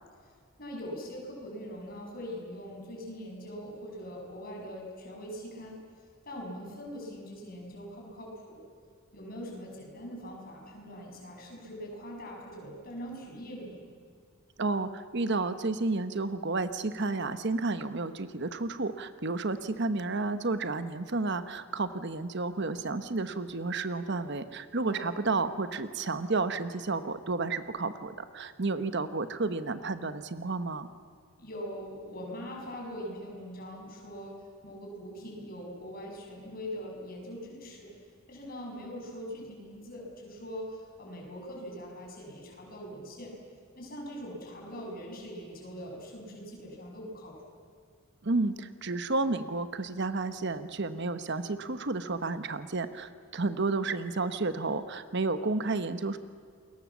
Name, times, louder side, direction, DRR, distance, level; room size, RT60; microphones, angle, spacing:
voice 1, 0.6-5.8 6.2-8.6 9.1-13.8 24.8-25.2 31.4-34.4 34.6-37.9 38.3-43.4 43.8-47.5, equal, 45° left, -1 dB, 6.9 m, -42 dB
voice 2, 14.6-30.9 48.2-56.2, right 3 dB, 55° right, 11 dB, 1.0 m, -31 dB
29.0 x 21.5 x 7.3 m, 2.1 s
head